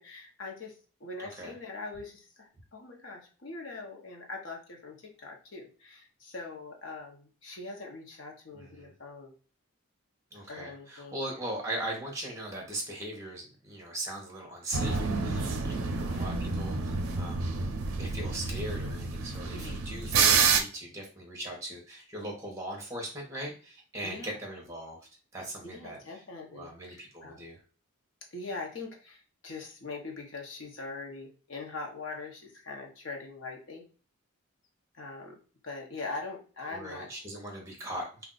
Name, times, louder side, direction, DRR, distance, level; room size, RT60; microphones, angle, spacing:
voice 1, 0.0-9.3 10.5-11.2 16.0-16.3 19.5-19.8 24.0-24.3 25.6-27.4 28.3-33.8 34.9-35.4 35.6-37.1, left 3 dB, 60° left, 1 dB, 0.8 m, -42 dB
voice 2, 1.2-1.5 8.5-8.9 10.3-17.5 18.0-25.0 25.3-26.0 26.5-27.6 36.7-38.2, right 1 dB, 15° right, -1 dB, 0.9 m, -39 dB
sound 1, 14.7-20.6, right 5 dB, 75° right, 0.5 m, -28 dB
2.5 x 2.3 x 3.8 m, 0.38 s
head